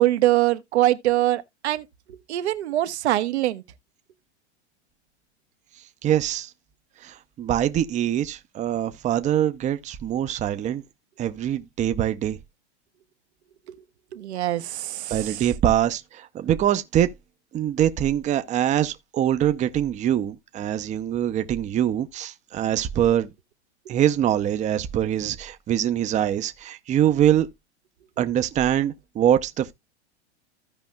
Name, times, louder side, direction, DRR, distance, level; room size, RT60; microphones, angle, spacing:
voice 1, 0.0-1.8 2.3-3.6 13.7-13.8 14.1-15.5, right 15 dB, 70° right, 0.9 m, -23 dB
voice 2, 6.0-6.5 7.0-10.8 11.2-12.4 15.1-17.1 17.5-23.3 23.9-27.5 28.2-29.7, right 11 dB, 20° right, 0.6 m, -23 dB
15.5 x 5.1 x 2.2 m
hypercardioid pair, 105°, 34 cm